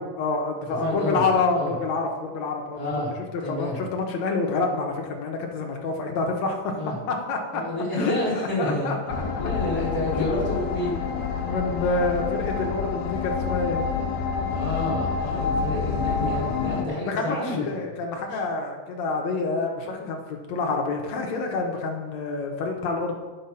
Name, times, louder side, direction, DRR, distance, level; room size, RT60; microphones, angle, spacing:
voice 1, 0.0-2.9 3.5-7.6 7.9-9.0 10.1-10.3 11.4-13.9 15.4-16.1 17.1-23.2, left 3 dB, 60° left, 1 dB, 2.1 m, -28 dB
voice 2, 0.8-1.2 1.5-1.7 2.7-3.1 3.4-3.8 6.7-7.0 7.5-8.9 9.4-11.0 14.5-17.6 18.3-18.4, left 1 dB, 10° left, -5 dB, 3.0 m, -29 dB
sound 1, 9.1-16.8, left 5 dB, 85° left, 2.8 m, -28 dB
10.0 x 6.8 x 5.7 m, 1.4 s
omnidirectional pair, 4.3 m